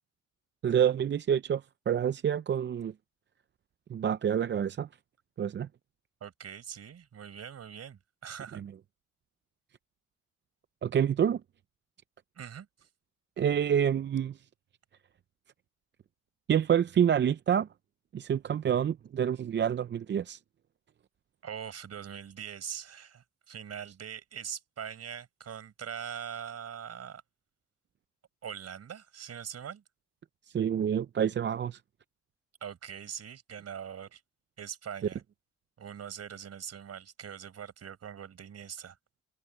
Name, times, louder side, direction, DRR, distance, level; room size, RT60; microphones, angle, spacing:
voice 1, 0.6-2.9 3.9-4.9 5.4-5.7 8.6-8.7 10.8-11.4 13.4-14.4 16.5-17.7 18.1-20.4 30.5-31.8, right 9 dB, 35° right, 0.5 m, -27 dB
voice 2, 6.2-8.6 12.4-12.7 21.4-27.2 28.4-29.8 32.6-34.2 34.6-35.2 35.8-39.0, right 8 dB, 55° right, 5.3 m, -42 dB
cardioid pair, 90°, 30 cm